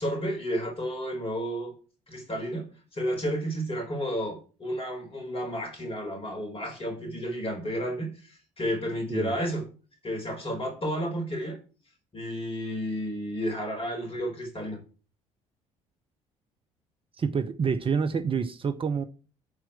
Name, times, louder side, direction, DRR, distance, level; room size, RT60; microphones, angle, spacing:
voice 1, 0.0-1.7 2.1-9.7 10.0-11.6 12.1-14.8, equal, 35° left, 4.6 m, -32 dB
voice 2, 17.2-19.0, right 6 dB, 30° right, 0.9 m, -27 dB
11.0 x 4.6 x 7.4 m
figure-of-eight pair, 50°, 17 cm